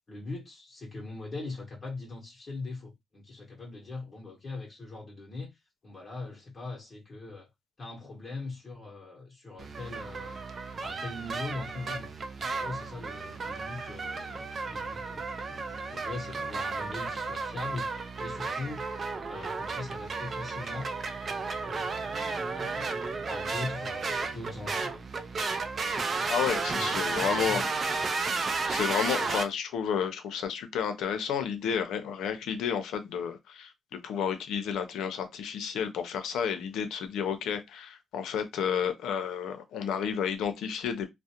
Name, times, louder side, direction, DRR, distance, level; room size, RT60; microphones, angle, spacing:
voice 1, 0.1-7.5 7.8-10.4 10.8-12.1 12.5-17.9 18.2-18.8 19.3-20.9 21.6-22.9 23.3-24.9 26.8-27.6, left 3 dB, 35° left, 0.8 m, -41 dB
sound 1, 9.6-29.5, right 4 dB, 40° right, 0.4 m, -33 dB
voice 2, 26.3-27.7 28.7-41.1, left 7 dB, 80° left, 0.5 m, -31 dB
2.4 x 2.0 x 2.8 m
cardioid pair, 90°, 0 cm